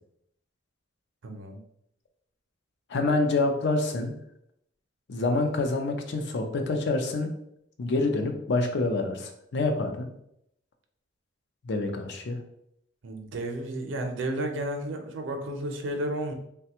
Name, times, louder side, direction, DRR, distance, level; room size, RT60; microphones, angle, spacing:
voice 1, 1.2-1.6 13.0-16.3, right 1 dB, 75° right, 4 dB, 0.5 m, -32 dB
voice 2, 2.9-4.1 5.1-7.3 7.8-10.1 11.6-12.4, left 2 dB, 65° left, 4 dB, 0.5 m, -27 dB
3.2 x 2.2 x 2.8 m, 0.75 s
head